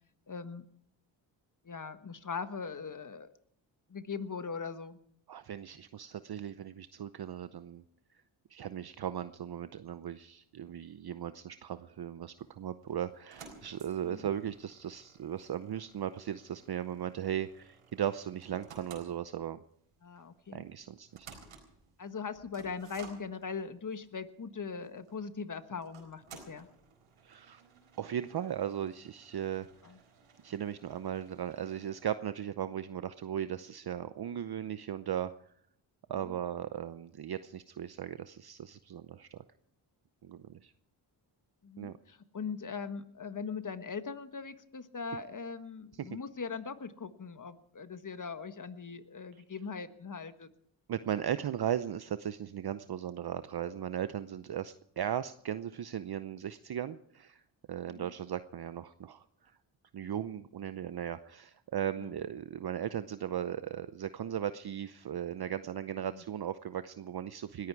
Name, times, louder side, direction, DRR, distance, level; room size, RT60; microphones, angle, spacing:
voice 1, 0.3-0.6 1.6-3.3 3.9-5.0 14.0-14.2 20.0-20.6 22.0-26.7 29.8-30.0 36.1-36.4 41.6-50.5 57.9-58.1 62.0-62.1 66.1-66.2, left 5 dB, 40° left, 11 dB, 1.4 m, -40 dB
voice 2, 5.3-7.8 8.5-19.6 20.5-21.3 27.2-27.6 28.0-29.7 30.4-35.3 36.1-39.4 40.2-40.7 41.8-41.9 45.9-46.2 50.9-57.4 57.7-59.2 59.9-67.7, right 10 dB, 50° right, 12 dB, 0.7 m, -37 dB
sound 1, 12.4-32.1, right 5 dB, 90° right, 4.2 m, -57 dB
20.0 x 14.5 x 4.7 m, 0.67 s
cardioid pair, 55°, 48 cm